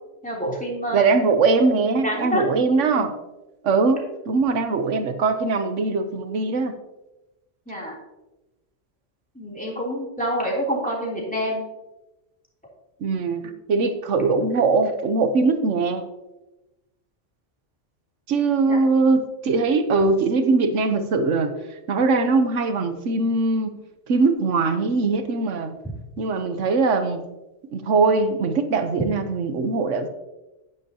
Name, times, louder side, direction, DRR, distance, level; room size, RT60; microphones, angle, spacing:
voice 1, 0.2-1.0 1.9-2.5 7.7-7.9 9.3-11.6 13.4-13.5 18.7-18.8, equal, 5° left, -4 dB, 3.2 m, -27 dB
voice 2, 0.9-3.1 3.6-6.7 13.0-16.0 18.3-21.5 21.9-23.7 24.1-25.8 26.2-27.2 27.7-30.1, right 4 dB, 75° right, 9 dB, 1.3 m, -21 dB
10.5 x 10.0 x 2.9 m, 1.0 s
omnidirectional pair, 1.3 m